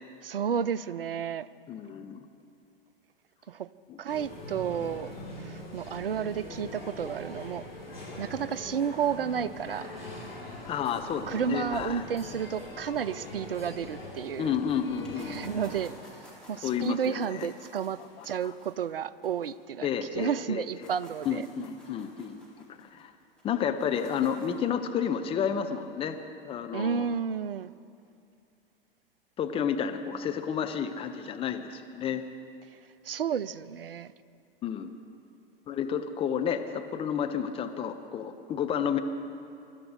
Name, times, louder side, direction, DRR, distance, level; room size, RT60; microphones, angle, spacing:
voice 1, 0.2-1.5 3.5-3.7 4.0-5.1 5.4-7.6 8.2-9.9 11.3-14.5 15.3-15.9 16.5-19.9 20.1-21.4 26.7-27.7 33.0-34.1, right 8 dB, 75° right, 18 dB, 0.5 m, -31 dB
voice 2, 1.7-2.2 3.9-4.0 10.6-12.0 14.4-15.4 16.6-17.5 18.0-18.5 19.8-20.9 21.2-22.4 22.7-23.1 23.4-26.2 26.4-27.1 29.4-32.2 34.6-34.9 35.7-39.0, left 8 dB, 20° left, 7 dB, 0.6 m, -31 dB
sound 1, 4.1-15.8, left 1 dB, 90° left, 3.2 m, -42 dB
sound 2, 15.0-20.3 20.6-24.6, equal, 5° left, 3.9 m, -54 dB
22.5 x 12.5 x 3.9 m, 2.6 s
figure-of-eight pair, 95°, 29 cm